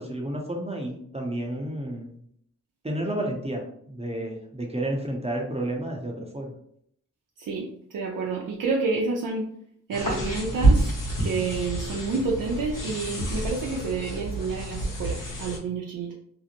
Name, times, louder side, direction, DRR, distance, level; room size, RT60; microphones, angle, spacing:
voice 1, 0.0-2.1 2.8-6.5, right 1 dB, 20° right, 0 dB, 0.7 m, -31 dB
voice 2, 7.4-9.5 9.9-10.9 11.2-16.1, right 4 dB, 85° right, -2 dB, 0.5 m, -29 dB
sound 1, 9.9-15.6, right 2 dB, 75° left, 1.1 m, -27 dB
2.6 x 2.0 x 2.8 m, 0.68 s
cardioid pair, 40°, 32 cm